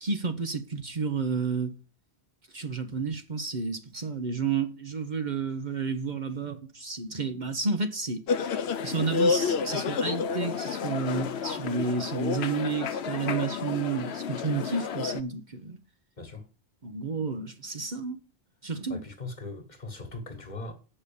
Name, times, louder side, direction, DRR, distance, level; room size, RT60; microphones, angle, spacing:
voice 1, 0.0-1.7 2.5-8.2 8.8-15.8 16.8-18.2 18.6-19.0, right 4 dB, 45° right, 1.1 m, -31 dB
sound 1, 8.3-15.2, left 6 dB, 75° left, 1.0 m, -30 dB
voice 2, 16.2-16.5 18.9-20.7, left 2 dB, 45° left, 1.7 m, -40 dB
8.2 x 5.6 x 7.0 m
omnidirectional pair, 1.1 m